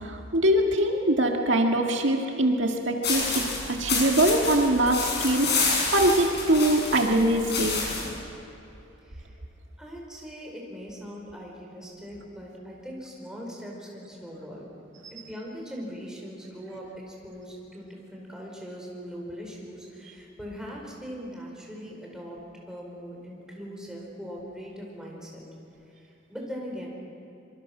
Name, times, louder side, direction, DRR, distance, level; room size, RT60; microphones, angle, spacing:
voice 1, 0.0-5.5 5.9-7.9 15.0-15.1, right 1 dB, 70° right, 2 dB, 1.9 m, -23 dB
sound 1, 3.0-8.1, left 4 dB, 60° left, 6.9 m, -28 dB
voice 2, 9.0-9.3 9.8-14.7 15.1-25.4 26.0-26.9, equal, 5° right, -2 dB, 4.8 m, -40 dB
26.0 x 24.0 x 6.1 m, 2.8 s
head